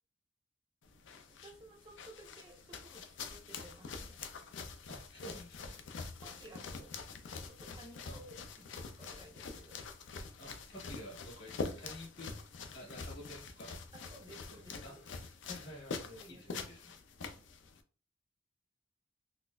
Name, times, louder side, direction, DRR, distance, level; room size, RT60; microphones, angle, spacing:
sound 1, 0.8-17.8, left 4 dB, 80° left, 0.5 m, -45 dB
voice 1, 1.3-4.2 6.2-7.0 7.5-9.8 13.9-15.0 16.1-16.7 17.2-17.4, right 1 dB, 25° right, 2 dB, 0.4 m, -56 dB
voice 2, 4.9-5.8 8.1-8.2 10.4-12.3 12.7-13.8 14.5-16.9, equal, 55° left, -3 dB, 1.6 m, -51 dB
4.0 x 2.4 x 2.2 m, 0.38 s
head